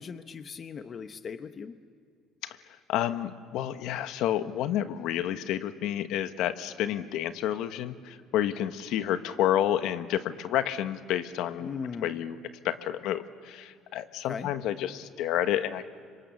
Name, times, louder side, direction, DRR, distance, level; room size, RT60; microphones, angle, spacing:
voice 1, 0.0-1.8 11.6-12.2 14.3-14.5, left 6 dB, 30° left, 10 dB, 0.9 m, -38 dB
voice 2, 2.9-11.7 12.0-12.4 12.6-15.9, left 11 dB, 70° left, 11 dB, 1.2 m, -30 dB
30.0 x 26.0 x 7.1 m, 2.2 s
cardioid pair, 155°, 0 cm